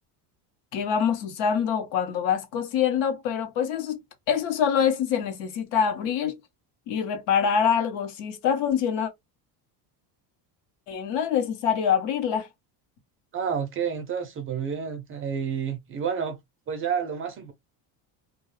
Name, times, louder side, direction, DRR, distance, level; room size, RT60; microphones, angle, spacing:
voice 1, 0.7-4.0 4.3-6.4 6.9-9.1 10.9-12.5, left 7 dB, 75° left, 0.9 m, -25 dB
voice 2, 13.3-16.4 16.7-17.5, right 7 dB, 30° right, 0.3 m, -29 dB
2.3 x 2.2 x 3.0 m
cardioid pair, 155°, 45 cm